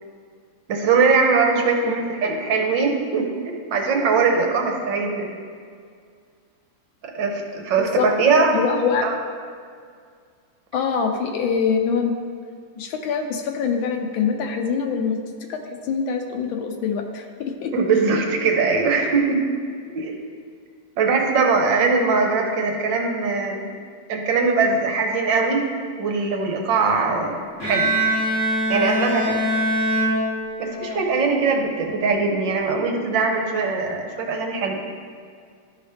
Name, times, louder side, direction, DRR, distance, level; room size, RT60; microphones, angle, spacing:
voice 1, 0.7-5.3 7.0-9.1 17.7-19.4 19.9-20.2 21.0-23.7 24.1-25.6 26.0-27.9 28.7-29.3 30.6-34.8, right 4 dB, 70° right, 2 dB, 1.5 m, -21 dB
voice 2, 8.5-9.1 10.7-12.1 12.8-15.2 15.5-17.7 30.7-31.0, left 6 dB, 80° left, 4 dB, 1.5 m, -24 dB
Bowed string instrument, 27.6-30.9, right 1 dB, 40° left, 2.4 m, -23 dB
12.5 x 4.9 x 3.4 m, 2.1 s
omnidirectional pair, 2.1 m